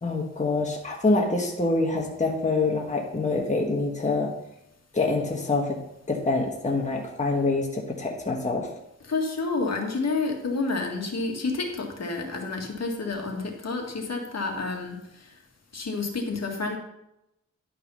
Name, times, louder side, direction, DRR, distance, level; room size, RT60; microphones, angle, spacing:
voice 1, 0.0-4.3 4.9-5.8 6.1-8.7, left 3 dB, 25° left, 0 dB, 1.4 m, -25 dB
voice 2, 9.1-15.0 15.7-16.8, left 3 dB, 60° left, 1 dB, 2.0 m, -29 dB
11.0 x 5.5 x 5.6 m, 0.85 s
wide cardioid pair, 95°, 30 cm